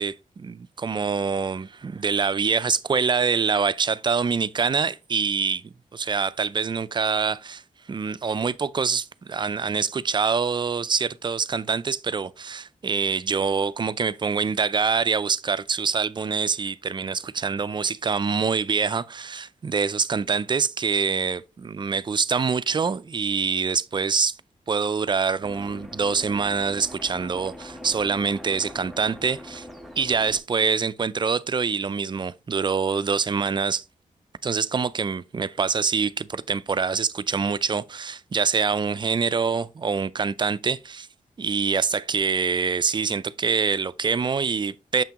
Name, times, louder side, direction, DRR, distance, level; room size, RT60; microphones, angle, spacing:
voice 1, 0.0-7.6 7.9-24.4 24.7-29.7 30.0-33.8 34.4-41.1 41.4-45.0, right 5 dB, 30° right, 0.3 m, -25 dB
sound 1, 25.4-30.4, equal, ahead, 0.7 m, -42 dB
6.8 x 5.7 x 2.9 m
wide cardioid pair, 110°, 14 cm